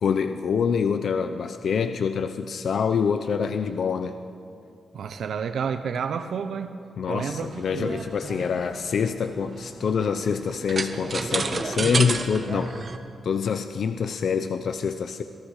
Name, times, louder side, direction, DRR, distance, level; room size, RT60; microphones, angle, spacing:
voice 1, 0.0-4.1 7.0-12.7 13.2-15.2, left 6 dB, 60° left, 8 dB, 0.8 m, -26 dB
voice 2, 4.9-6.7 7.1-8.1, right 6 dB, 75° right, 7 dB, 0.9 m, -30 dB
sound 1, 7.5-13.0, right 4 dB, 35° right, 1.3 m, -31 dB
27.5 x 17.5 x 6.5 m, 2.5 s
wide cardioid pair, 135°, 0 cm